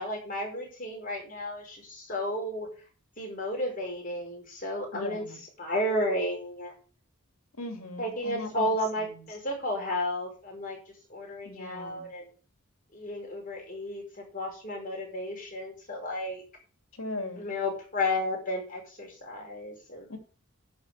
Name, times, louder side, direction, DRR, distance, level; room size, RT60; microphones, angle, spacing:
voice 1, 0.0-2.7 3.2-5.2 5.6-6.7 8.0-10.8 11.1-12.3 12.9-16.4 17.4-20.1, left 1 dB, 40° left, 0 dB, 5.4 m, -33 dB
voice 2, 4.9-5.4 7.6-8.7 9.0-9.2 11.4-12.1 16.9-17.4 20.1-20.2, left 2 dB, 75° left, 6 dB, 2.6 m, -38 dB
11.0 x 5.5 x 8.4 m, 0.39 s
head